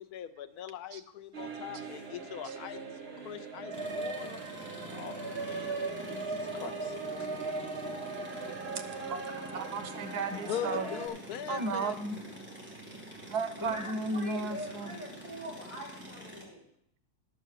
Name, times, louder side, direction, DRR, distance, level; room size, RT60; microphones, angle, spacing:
voice 1, 0.0-2.8 3.2-4.4 4.9-5.8 6.0-6.9 10.5-12.0, left 9 dB, 80° left, 11 dB, 1.2 m, -41 dB
sound 1, 1.3-11.1, right 3 dB, 40° right, 1.5 m, -39 dB
sound 2, 3.7-16.4, right 1 dB, 5° right, 2.5 m, -46 dB
voice 2, 9.1-10.9 11.5-12.2 13.3-15.0, right 3 dB, 85° right, 10 dB, 1.4 m, -34 dB
voice 3, 13.6-16.7, equal, 20° left, -2 dB, 2.7 m, -43 dB
11.5 x 4.7 x 7.3 m, 0.68 s
omnidirectional pair, 1.7 m